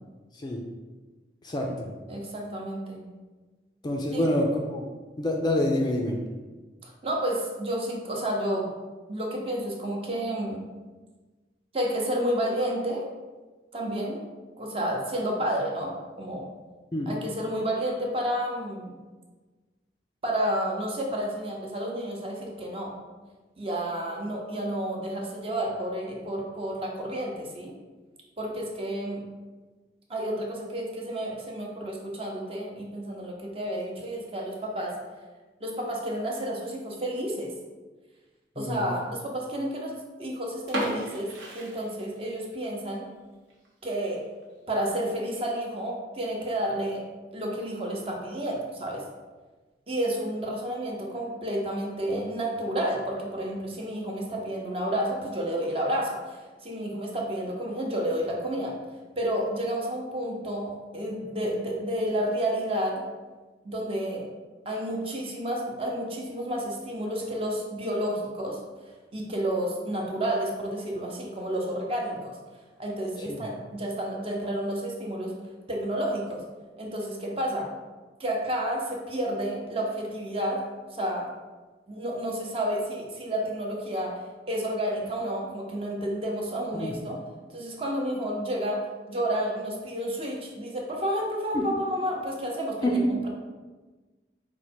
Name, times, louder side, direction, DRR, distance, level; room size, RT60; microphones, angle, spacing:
voice 1, 1.4-1.9 3.8-4.9 5.2-6.2 16.9-17.1 38.6-38.9 86.7-87.0 91.5-91.7 92.8-93.1, left 1 dB, 25° left, 0 dB, 0.4 m, -26 dB
voice 2, 2.1-3.0 4.1-4.2 6.8-8.7 9.1-10.6 11.7-13.1 13.7-14.2 14.6-16.5 17.1-18.9 20.2-22.9 23.6-27.7 28.4-29.2 30.1-34.9 35.6-37.5 38.6-43.1 43.8-44.2 44.7-47.0 47.3-49.0 49.9-58.7 59.2-63.0 63.6-64.2 64.7-68.6 69.1-72.3 72.8-75.3 75.7-76.4 76.8-77.7 78.2-80.6 80.9-81.3 81.9-84.1 84.5-87.2 87.5-88.8 89.1-93.0, right 1 dB, 30° right, -1 dB, 0.7 m, -30 dB
sound 1, 40.6-42.5 42.8-42.9 43.5-43.7 44.1-44.2 44.4-44.5 45.3-45.6, equal, 90° right, 1.1 m, -33 dB
4.6 x 2.2 x 4.3 m, 1.3 s
head